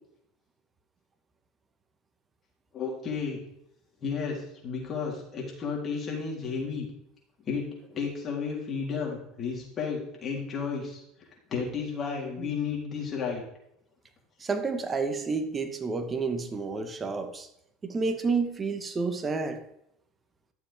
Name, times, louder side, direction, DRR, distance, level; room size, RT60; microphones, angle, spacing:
voice 1, 2.7-3.4 4.0-6.9 7.4-11.0 11.5-13.4, left 5 dB, 35° left, -2 dB, 3.6 m, -32 dB
voice 2, 14.4-17.5 17.8-19.6, right 4 dB, 25° right, 7 dB, 1.4 m, -30 dB
12.5 x 7.1 x 3.6 m, 0.77 s
supercardioid pair, 105°, 0 cm